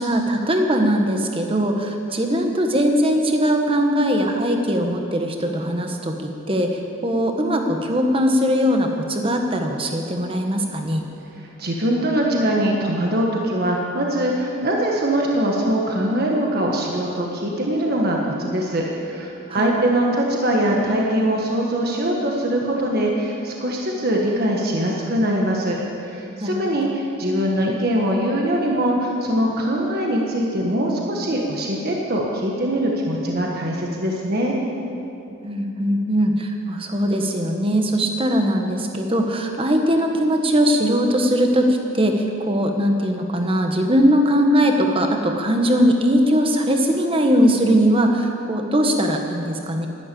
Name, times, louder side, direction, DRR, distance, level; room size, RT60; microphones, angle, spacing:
voice 1, 0.0-11.0 19.5-19.7 26.4-26.5 35.4-49.9, equal, 25° right, 3 dB, 1.3 m, -20 dB
voice 2, 11.4-25.8 26.0-34.6, right 1 dB, 50° right, -1 dB, 1.5 m, -22 dB
12.5 x 12.0 x 8.5 m, 2.8 s
head